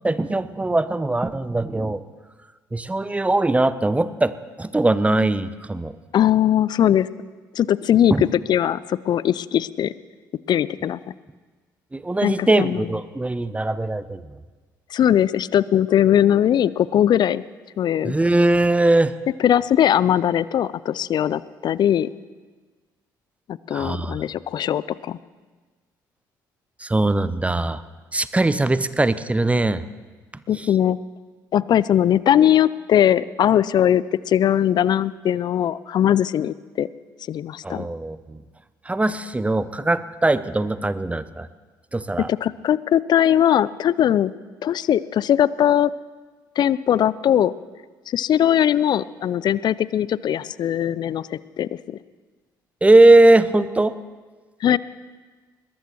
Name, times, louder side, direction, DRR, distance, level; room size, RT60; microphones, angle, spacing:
voice 1, 0.0-2.0 2.7-4.3 4.6-6.0 8.1-8.2 11.9-14.2 18.0-19.1 23.7-24.2 26.8-27.8 28.1-29.8 30.5-30.7 37.6-38.4 38.9-41.5 41.9-42.3 52.8-54.0, right 2 dB, 15° right, 15 dB, 0.7 m, -20 dB
voice 2, 6.1-7.1 7.6-8.1 8.5-9.9 10.5-11.0 12.2-12.8 14.9-17.4 17.8-18.1 19.4-22.1 23.5-25.2 30.5-31.0 31.5-36.9 37.3-37.9 42.3-44.3 44.6-45.9 46.6-47.5 48.1-52.0 54.6-54.8, left 10 dB, 45° left, 19 dB, 0.4 m, -20 dB
21.5 x 19.0 x 3.1 m, 1.4 s
figure-of-eight pair, 50°, 10 cm